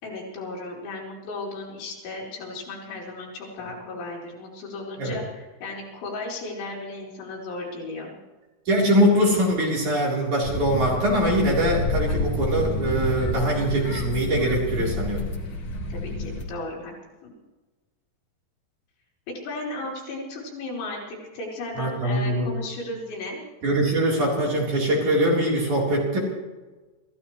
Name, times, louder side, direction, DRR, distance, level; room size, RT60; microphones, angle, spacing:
voice 1, 0.0-8.1 15.9-16.9 17.2-17.3 19.3-23.4, left 2 dB, 80° left, -3 dB, 6.2 m, -35 dB
voice 2, 8.7-15.2 21.8-22.5 23.6-26.2, equal, 40° right, -3 dB, 5.0 m, -22 dB
sound 1, 10.4-16.4, left 1 dB, 45° left, 1.7 m, -29 dB
28.0 x 15.0 x 3.2 m, 1.2 s
omnidirectional pair, 5.3 m